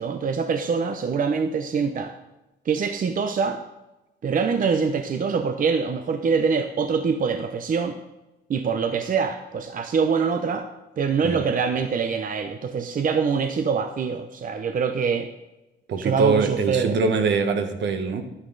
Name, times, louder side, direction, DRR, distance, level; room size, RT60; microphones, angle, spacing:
voice 1, 0.0-2.1 2.7-3.6 4.2-8.0 8.5-10.7 11.0-15.3 16.0-17.0, right 5 dB, 45° right, 8 dB, 0.7 m, -24 dB
voice 2, 15.9-18.2, right 4 dB, 65° right, 7 dB, 1.3 m, -23 dB
10.5 x 9.5 x 3.9 m, 1.0 s
cardioid pair, 90°, 20 cm